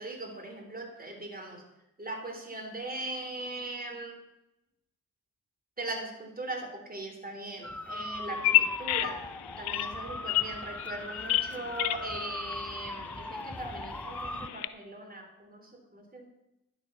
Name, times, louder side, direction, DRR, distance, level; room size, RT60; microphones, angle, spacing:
voice 1, 0.0-1.6 2.0-4.2 5.8-9.3 9.6-16.3, right 2 dB, 20° right, 3 dB, 3.7 m, -40 dB
sound 1, 7.6-14.5, left 1 dB, 5° left, 0.5 m, -40 dB
Bird vocalization bird call bird song, 8.3-14.7, left 14 dB, 75° left, 0.6 m, -32 dB
10.5 x 7.8 x 5.9 m, 0.88 s
hypercardioid pair, 50°, 39 cm